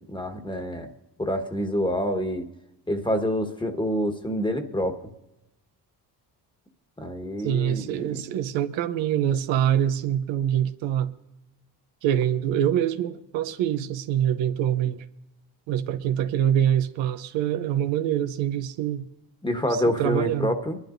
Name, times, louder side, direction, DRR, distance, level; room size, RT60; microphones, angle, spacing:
voice 1, 0.1-0.9 1.2-2.4 2.9-5.0 7.0-8.2 19.4-20.8, equal, 10° left, 1.5 m, -27 dB
voice 2, 7.4-11.1 12.0-15.0 15.7-19.0 20.0-20.5, right 10 dB, 85° right, 0.8 m, -25 dB
23.5 x 11.5 x 2.6 m
supercardioid pair, 65°, 44 cm